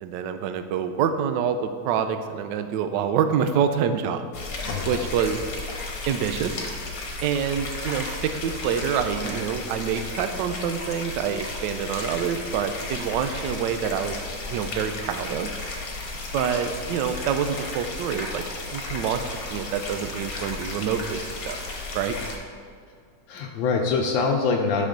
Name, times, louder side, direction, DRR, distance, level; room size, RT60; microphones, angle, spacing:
voice 1, 0.0-4.2 4.6-5.4 6.1-6.6 7.2-15.5 16.3-18.4 18.7-19.2 19.5-21.6 21.9-22.2, right 7 dB, 75° right, 8 dB, 1.1 m, -26 dB
sound 1, 4.3-22.4, left 2 dB, 50° left, 1.4 m, -34 dB
voice 2, 4.6-5.1 23.3-24.8, left 4 dB, 70° left, 2 dB, 1.3 m, -24 dB
10.0 x 6.1 x 3.8 m, 2.2 s
omnidirectional pair, 2.3 m